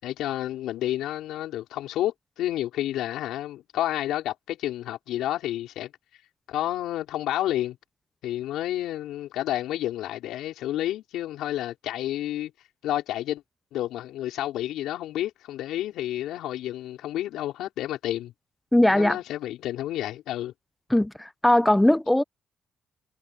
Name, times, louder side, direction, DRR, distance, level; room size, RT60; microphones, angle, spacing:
voice 1, 0.0-5.9 6.5-7.8 8.2-12.5 12.8-13.4 13.7-18.3 18.9-20.5, left 13 dB, 85° left, 5.1 m, -30 dB
voice 2, 18.7-19.2 20.9-22.2, left 1 dB, 10° left, 0.9 m, -20 dB
cardioid pair, 90°, 0 cm